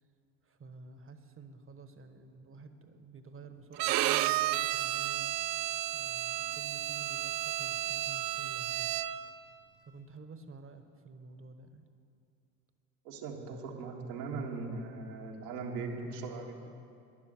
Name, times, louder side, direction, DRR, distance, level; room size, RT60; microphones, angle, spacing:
voice 1, 0.4-5.4 5.9-8.9 9.8-11.8, right 4 dB, 25° right, 8 dB, 1.3 m, -51 dB
Bowed string instrument, 3.8-9.3, right 14 dB, 45° right, 0.5 m, -32 dB
voice 2, 13.0-16.7, right 4 dB, 70° right, 0 dB, 2.0 m, -39 dB
12.5 x 10.5 x 7.8 m, 2.5 s
hypercardioid pair, 70°, 48 cm